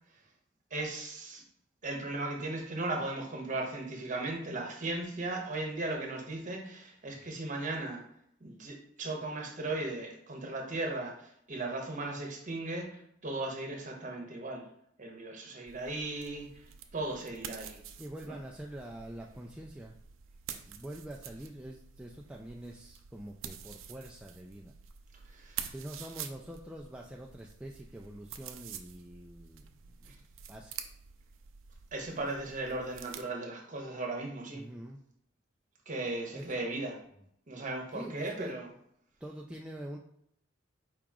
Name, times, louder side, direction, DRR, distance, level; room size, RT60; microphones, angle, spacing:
voice 1, 0.7-1.4 1.8-8.0 8.4-14.6 15.0-16.5 16.9-17.8 18.3-18.4 25.3-25.7 31.9-34.6 35.9-37.0 37.5-38.7, right 2 dB, 40° right, 1 dB, 1.0 m, -37 dB
sound 1, 15.7-33.2, right 8 dB, 75° right, 0.5 m, -48 dB
voice 2, 18.0-20.0 20.7-24.7 25.4-30.7 34.5-35.0 36.3-36.5 37.9-38.6 39.2-40.0, right 1 dB, 5° right, -2 dB, 0.3 m, -45 dB
4.8 x 2.9 x 3.6 m, 0.71 s
head